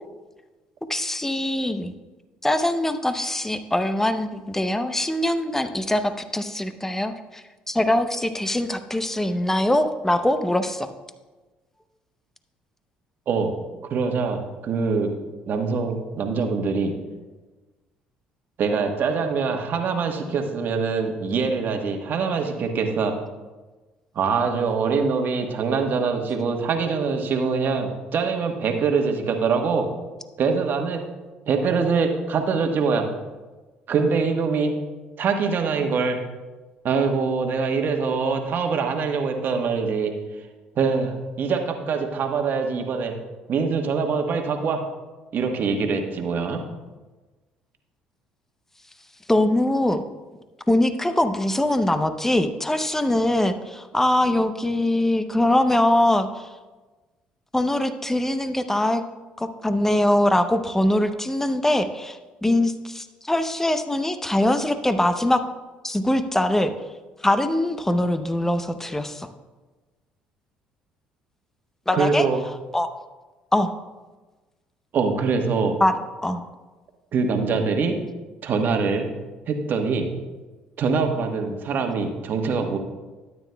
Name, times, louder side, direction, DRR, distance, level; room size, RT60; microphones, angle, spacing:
voice 1, 0.9-1.9 2.4-10.9 49.3-50.0 50.7-56.5 57.5-59.0 59.4-65.4 65.8-66.7 67.2-69.3 71.9-72.2 72.7-72.9 73.5-73.7 75.8-76.0 76.2-76.4, left 1 dB, 10° left, 10 dB, 0.7 m, -22 dB
voice 2, 13.9-15.1 15.5-16.9 18.6-23.1 24.1-29.9 30.4-31.0 31.5-33.1 33.9-34.8 35.2-36.2 36.8-40.1 40.8-43.1 43.5-44.8 45.3-46.6 71.9-72.4 74.9-75.8 77.1-78.0 78.4-79.1 79.5-80.1 80.8-82.8, right 5 dB, 55° right, 4 dB, 1.3 m, -24 dB
12.5 x 9.2 x 2.3 m, 1.2 s
supercardioid pair, 70°, 4 cm